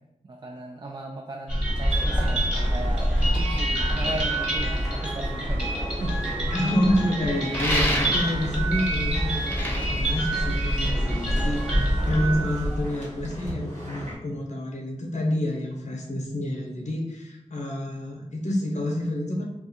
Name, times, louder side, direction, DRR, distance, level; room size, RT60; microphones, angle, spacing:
voice 1, 0.2-2.4 2.7-6.2 6.6-6.8, right 2 dB, 35° right, 1 dB, 0.3 m, -36 dB
sound 1, 1.5-12.8, right 1 dB, 5° right, 1.1 m, -26 dB
sound 2, 1.9-14.2, equal, 80° right, 1.3 m, -38 dB
voice 2, 6.5-19.4, left 1 dB, 75° left, -1 dB, 0.7 m, -28 dB
sound 3, 7.5-8.5 9.3-11.0, left 1 dB, 15° left, 0.8 m, -29 dB
2.4 x 2.3 x 4.0 m, 0.90 s
wide cardioid pair, 55°, 12 cm